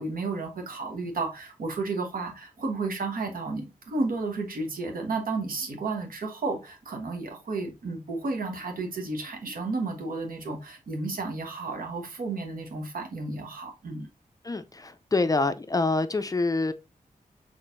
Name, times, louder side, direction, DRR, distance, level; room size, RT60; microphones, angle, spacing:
voice 1, 0.0-14.1, right 3 dB, 80° right, 1.1 m, -32 dB
voice 2, 14.4-16.7, left 3 dB, 25° left, 0.4 m, -26 dB
4.2 x 3.2 x 2.5 m
cardioid pair, 70°, 15 cm